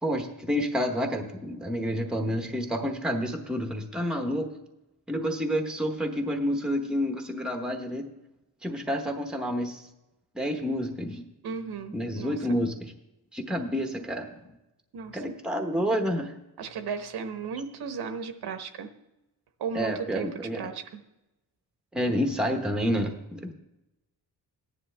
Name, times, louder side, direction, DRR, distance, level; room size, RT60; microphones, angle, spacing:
voice 1, 0.0-4.5 5.1-8.1 8.6-9.8 10.3-11.2 11.9-12.9 13.3-14.5 15.1-16.3 19.7-20.7 21.9-23.5, equal, ahead, 4 dB, 0.9 m, -29 dB
voice 2, 11.4-12.4 14.9-15.2 16.6-18.9 19.6-20.3 20.5-21.0, right 5 dB, 75° right, 8 dB, 1.0 m, -35 dB
15.0 x 10.0 x 3.3 m, 0.94 s
wide cardioid pair, 170°, 39 cm